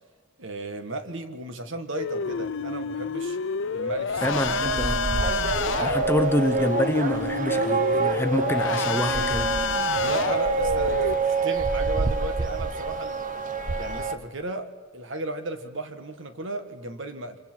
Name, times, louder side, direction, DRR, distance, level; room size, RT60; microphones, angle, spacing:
voice 1, 0.4-3.4 3.7-4.7 9.9-13.2 13.7-17.4, right 2 dB, 60° right, 1.6 m, -35 dB
sound 1, 2.0-11.1, left 6 dB, 60° left, 0.6 m, -29 dB
voice 2, 4.2-5.0 5.8-9.5, equal, 10° left, 0.8 m, -26 dB
sound 2, 4.3-14.1, right 4 dB, 40° right, 0.9 m, -26 dB
29.0 x 25.5 x 4.6 m
head